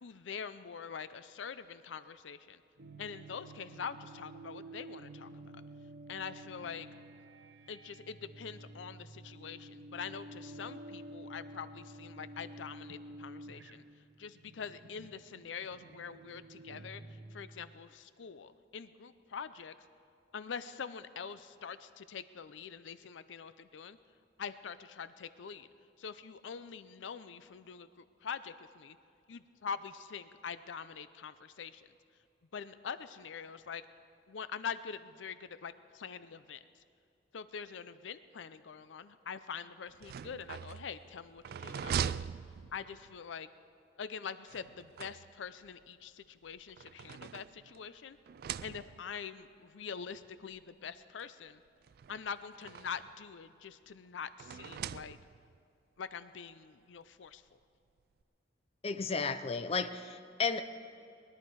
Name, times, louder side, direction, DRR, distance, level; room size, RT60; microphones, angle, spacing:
voice 1, 0.0-2.6 3.0-5.3 6.1-6.9 7.7-13.8 14.2-17.0 17.3-19.7 20.3-24.0 24.4-25.7 26.0-29.0 29.3-31.9 32.5-33.8 34.3-36.6 37.3-42.3 42.7-43.5 44.0-48.2 48.6-51.6 52.1-55.2 56.0-57.4, left 6 dB, 80° left, 13 dB, 0.5 m, -44 dB
sound 1, 2.8-17.9, right 1 dB, 75° right, 0.7 m, -51 dB
sound 2, 39.9-43.2 44.5-45.7 46.5-47.9 48.3-49.2 50.1-50.2 50.6-50.7 51.8-53.2 54.4-55.6, right 8 dB, 55° right, 0.3 m, -41 dB
voice 2, 58.8-60.6, left 4 dB, 35° left, 10 dB, 0.6 m, -33 dB
20.5 x 11.5 x 4.7 m, 2.5 s
head